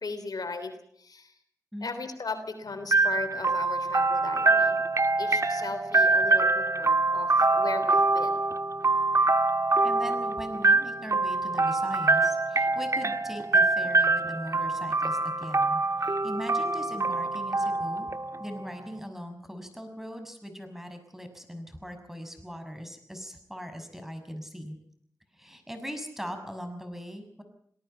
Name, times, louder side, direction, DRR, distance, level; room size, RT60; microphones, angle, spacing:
voice 1, 0.0-1.3 1.8-4.8 5.2-8.4, left 4 dB, 70° left, 9 dB, 3.3 m, -37 dB
sound 1, 2.9-18.7, right 3 dB, 50° right, 1.6 m, -25 dB
voice 2, 9.8-18.1 18.4-24.8 25.3-27.4, equal, 5° right, 7 dB, 6.3 m, -40 dB
27.0 x 19.0 x 5.6 m, 0.66 s
cardioid pair, 45°, 7 cm